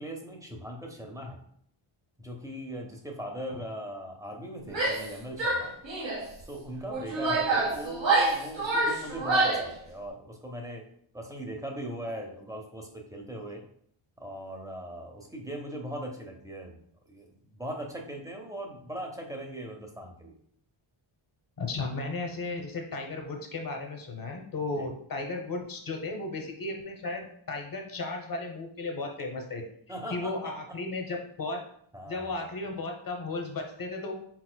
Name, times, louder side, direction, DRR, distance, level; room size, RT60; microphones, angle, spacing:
voice 1, 0.0-1.4 2.2-5.7 6.5-10.8 11.1-13.6 14.2-16.8 17.1-20.4 24.8-24.9 29.9-30.5 31.9-32.4, right 1 dB, 5° right, 1 dB, 0.6 m, -39 dB
Female speech woman speaking / Yell, 4.7-5.1 5.4-6.3 6.9-9.7, right 2 dB, 60° right, 1.2 m, -27 dB
voice 2, 21.6-29.6 30.1-31.6 32.1-34.1, left 3 dB, 45° left, 3 dB, 0.9 m, -35 dB
4.5 x 4.0 x 2.2 m, 0.66 s
wide cardioid pair, 120°, 50 cm